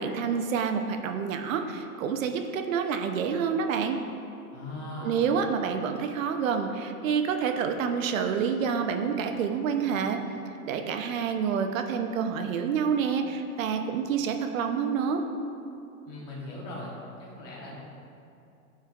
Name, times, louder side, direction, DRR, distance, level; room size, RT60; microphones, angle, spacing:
voice 1, 0.0-4.0 5.0-10.2 10.6-15.2, right 6 dB, 60° right, 6 dB, 0.7 m, -28 dB
voice 2, 4.5-5.2 16.1-16.9 17.2-17.8, left 1 dB, 20° left, -4 dB, 1.1 m, -39 dB
12.0 x 4.5 x 2.4 m, 2.6 s
supercardioid pair, 170°, 44 cm